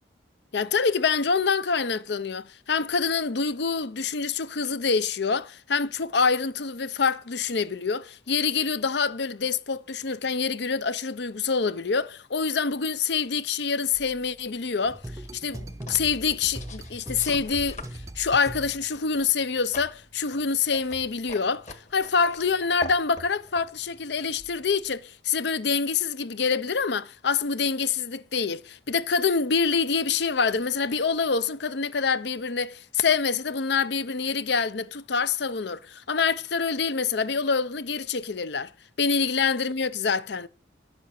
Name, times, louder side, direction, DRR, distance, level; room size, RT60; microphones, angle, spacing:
voice 1, 0.5-15.0 15.3-17.8 18.2-21.6 21.9-38.7 39.0-40.5, left 5 dB, 65° left, 0.7 m, -26 dB
sound 1, 13.9-25.0, left 1 dB, 40° left, 1.7 m, -45 dB
sound 2, 14.8-19.0, right 1 dB, 15° right, 0.6 m, -39 dB
11.0 x 7.7 x 7.4 m
head